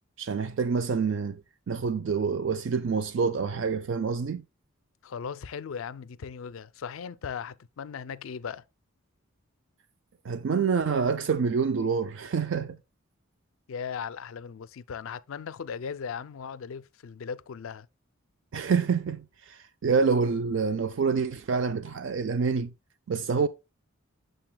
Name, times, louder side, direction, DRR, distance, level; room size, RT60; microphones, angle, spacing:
voice 1, 0.2-1.4 1.7-4.4 10.2-12.8 18.5-22.7 23.1-23.5, right 5 dB, 60° right, 0.4 m, -27 dB
voice 2, 5.0-8.6 13.7-17.9, left 6 dB, 70° left, 0.4 m, -38 dB
8.9 x 6.8 x 2.2 m
head